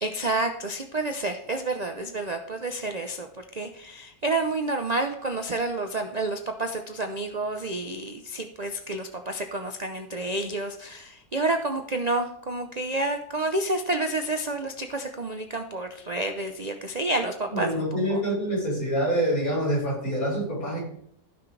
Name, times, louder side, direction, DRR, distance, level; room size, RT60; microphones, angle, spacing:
voice 1, 0.0-17.8 18.1-18.2, right 2 dB, 65° right, 5 dB, 0.4 m, -29 dB
voice 2, 17.5-20.8, equal, 50° left, -5 dB, 5.4 m, -26 dB
15.5 x 6.2 x 3.3 m, 0.67 s
omnidirectional pair, 1.9 m